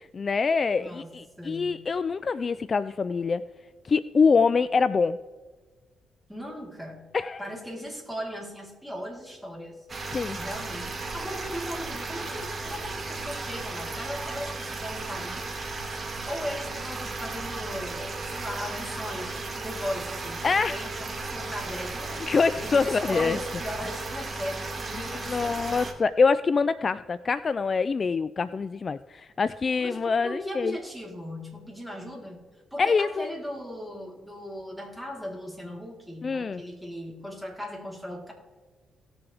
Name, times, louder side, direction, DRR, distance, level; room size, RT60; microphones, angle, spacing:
voice 1, 0.0-3.4 3.8-5.2 7.1-7.4 10.1-10.4 20.4-20.8 22.2-23.4 25.0-30.8 32.8-33.3 36.2-36.6, left 5 dB, 40° left, 15 dB, 0.3 m, -25 dB
voice 2, 0.8-1.1 1.4-1.9 6.3-7.1 7.4-9.9 10.4-15.5 16.3-22.1 22.5-25.9 29.8-32.4 32.7-38.3, equal, ahead, -1 dB, 3.7 m, -38 dB
sound 1, 9.9-25.9, right 3 dB, 35° right, 1.9 m, -35 dB
18.0 x 7.0 x 3.4 m, 1.4 s
cardioid pair, 75°, 0 cm